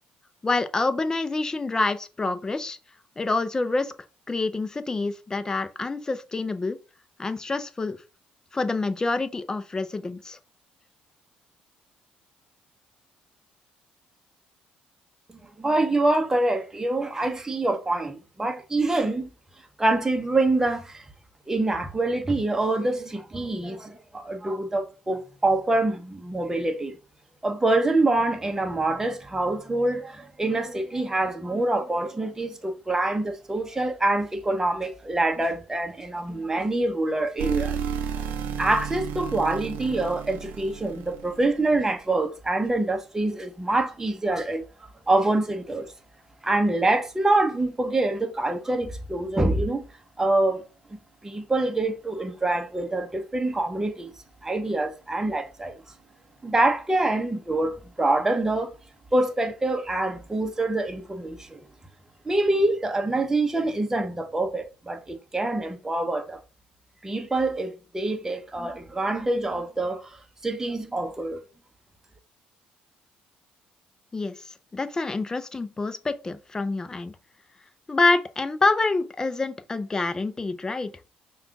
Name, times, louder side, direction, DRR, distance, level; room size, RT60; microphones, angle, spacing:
voice 1, 0.4-2.8 3.2-3.9 4.3-6.8 7.2-8.0 8.5-10.4 74.1-77.1 77.9-80.9, left 3 dB, 20° left, 0.5 m, -27 dB
voice 2, 15.3-19.3 19.8-21.0 21.5-26.9 27.4-37.8 38.6-44.6 45.1-45.9 46.4-49.8 50.2-50.6 50.9-54.1 54.4-55.8 56.4-58.7 59.1-61.6 62.2-66.4 67.0-71.4, right 2 dB, 15° right, 0.8 m, -25 dB
sound 1, 37.4-41.6, right 7 dB, 80° right, 0.6 m, -32 dB
5.4 x 2.3 x 3.6 m
cardioid pair, 90°, 3 cm